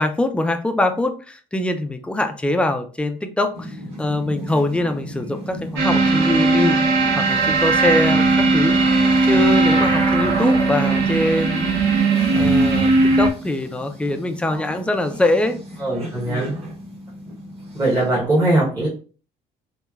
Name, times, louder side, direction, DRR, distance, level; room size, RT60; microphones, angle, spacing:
voice 1, 0.0-6.8 7.2-8.7 9.2-12.1 12.3-15.6 16.1-16.5, left 2 dB, 5° left, 6 dB, 0.3 m, -23 dB
sound 1, 3.5-18.3, equal, 35° right, 1.1 m, -36 dB
sound 2, 5.8-13.3, right 3 dB, 85° right, 0.6 m, -17 dB
voice 2, 15.8-16.5 17.7-18.9, right 1 dB, 20° right, -5 dB, 0.9 m, -20 dB
3.0 x 2.1 x 2.3 m, 0.38 s
cardioid pair, 110°, 17 cm